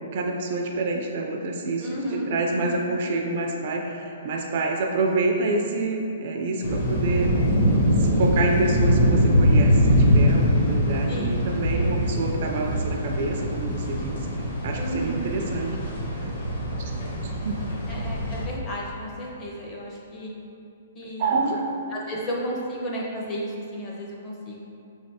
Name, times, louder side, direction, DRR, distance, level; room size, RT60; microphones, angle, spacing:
voice 1, 0.1-7.4 8.0-14.3 14.6-15.8 16.2-16.3 16.8-16.9 17.2-17.6 21.2-21.6, right 3 dB, 40° right, 1 dB, 0.3 m, -27 dB
voice 2, 1.8-2.9 11.1-11.3 11.7-12.0 14.8-15.2 17.9-20.3 20.9-21.5 21.9-24.6, equal, 15° left, -4 dB, 0.5 m, -33 dB
sound 1, 6.6-18.5, equal, 45° left, 0.8 m, -22 dB
5.0 x 3.1 x 2.8 m, 2.6 s
hypercardioid pair, 170°, 0 cm